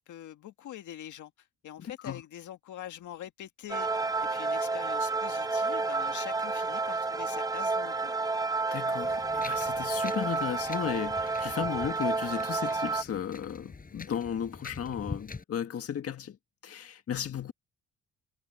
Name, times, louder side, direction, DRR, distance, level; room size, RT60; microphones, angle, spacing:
voice 1, 0.0-8.1, left 11 dB, 75° left, 2.0 m, -44 dB
voice 2, 1.8-2.2 8.7-16.4 16.6-17.5, left 8 dB, 50° left, 1.7 m, -35 dB
sound 1, 3.7-13.0, right 3 dB, 10° right, 1.0 m, -30 dB
Wind, 9.0-15.4, left 4 dB, 30° left, 5.3 m, -45 dB
cardioid pair, 90°, 30 cm